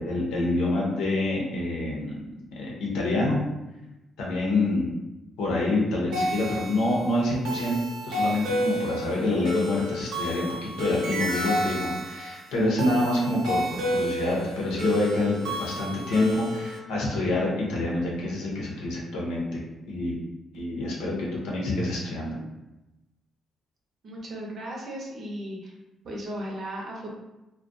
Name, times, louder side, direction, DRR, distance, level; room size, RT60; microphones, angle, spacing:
voice 1, 0.0-2.2 2.6-3.4 4.2-4.9 5.4-7.8 8.0-19.6 19.9-20.2 20.5-22.4, left 2 dB, 90° left, -3 dB, 0.7 m, -27 dB
sound 1, 6.1-16.8, equal, 90° right, 0.6 m, -30 dB
voice 2, 24.0-25.8 26.0-27.2, right 1 dB, 55° right, -2 dB, 0.7 m, -36 dB
2.4 x 2.2 x 2.6 m, 0.99 s
cardioid pair, 90°, 0 cm